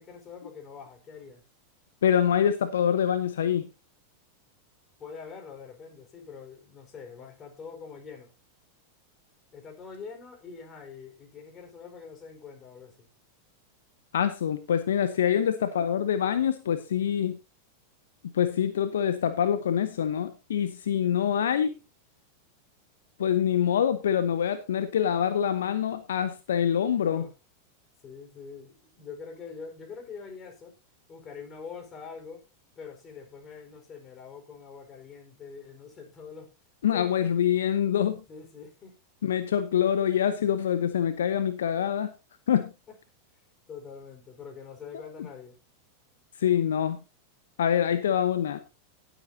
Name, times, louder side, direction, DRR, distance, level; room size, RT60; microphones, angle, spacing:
voice 1, 0.0-1.4 5.0-8.3 9.5-13.1 27.0-27.3 28.0-30.7 31.1-32.4 32.8-36.5 36.9-37.3 38.3-38.9 42.9-43.0 43.7-45.6, left 5 dB, 30° left, 4.6 m, -44 dB
voice 2, 2.0-3.7 14.1-17.4 18.3-21.8 23.2-27.2 36.8-38.2 39.2-42.1 42.5-42.7 46.4-47.0 47.6-48.6, left 9 dB, 70° left, 0.9 m, -25 dB
18.5 x 8.2 x 2.8 m
figure-of-eight pair, 90°, 0 cm